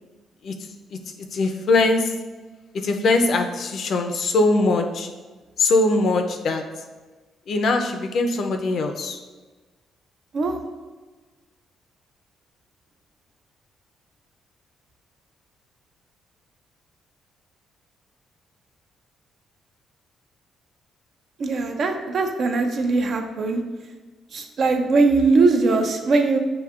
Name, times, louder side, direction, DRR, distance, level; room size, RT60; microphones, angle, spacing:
voice 1, 1.3-2.1 2.8-5.1 5.6-6.6 7.5-9.2, left 2 dB, 65° left, 5 dB, 0.5 m, -21 dB
voice 2, 21.4-23.6 24.3-26.4, right 3 dB, 55° right, 5 dB, 0.5 m, -20 dB
6.8 x 2.6 x 2.4 m, 1.3 s
cardioid pair, 90°, 0 cm